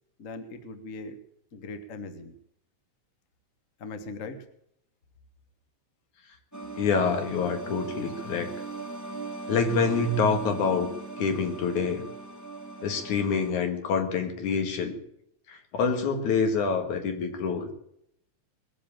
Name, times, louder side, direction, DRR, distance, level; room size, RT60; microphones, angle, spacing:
voice 1, 0.2-1.2 1.5-2.3 3.8-4.5, left 3 dB, 55° left, 8 dB, 0.9 m, -39 dB
sound 1, 6.5-13.5, right 3 dB, 25° left, 0.3 m, -39 dB
voice 2, 6.8-8.5 9.5-10.9 11.2-12.1 12.8-15.0 15.5-17.7, left 5 dB, 75° left, 6 dB, 3.2 m, -26 dB
21.0 x 7.7 x 8.8 m, 0.73 s
omnidirectional pair, 3.5 m